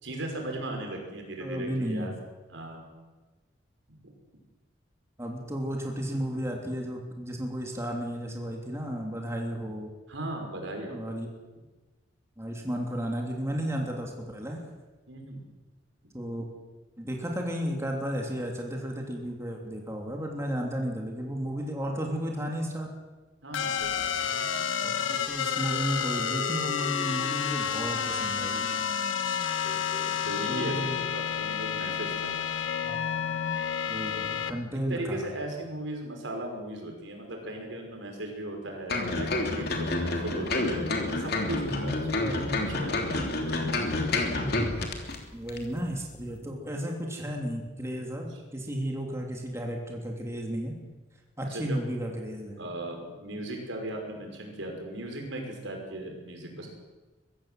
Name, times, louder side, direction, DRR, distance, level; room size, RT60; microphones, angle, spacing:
voice 1, 0.0-2.1 2.5-2.9 10.1-11.0 15.1-15.4 23.4-24.3 24.8-24.9 29.6-32.4 34.9-40.8 41.1-43.6 44.8-44.9 51.4-51.8 52.6-56.7, right 1 dB, 80° right, 2 dB, 5.6 m, -37 dB
voice 2, 1.4-2.1 5.2-9.9 10.9-11.3 12.4-14.6 16.1-16.5 17.0-22.9 24.8-28.7 30.5-31.0 32.8-33.0 33.9-35.3 42.1-42.5 45.3-50.7 51.4-52.6, equal, 15° right, 0 dB, 3.1 m, -33 dB
sound 1, 23.5-34.5, left 7 dB, 85° left, 1.3 m, -30 dB
sound 2, 38.9-45.2 45.5-45.6, left 2 dB, 55° left, 3.2 m, -29 dB
23.0 x 15.5 x 7.8 m, 1.2 s
head